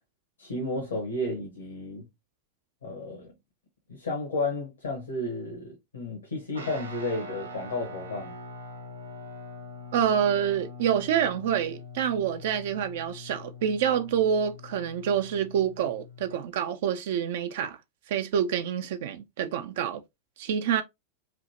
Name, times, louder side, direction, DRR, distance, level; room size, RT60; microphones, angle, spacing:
voice 1, 0.4-2.1 2.8-3.3 3.9-8.3, left 2 dB, 70° left, 1.3 m, -32 dB
Guitar, 6.5-16.4, left 2 dB, 80° right, 1.2 m, -43 dB
voice 2, 9.9-17.8 18.1-20.0 20.4-20.8, right 8 dB, 55° right, 0.4 m, -27 dB
5.0 x 2.7 x 2.8 m
figure-of-eight pair, 90°, 0 cm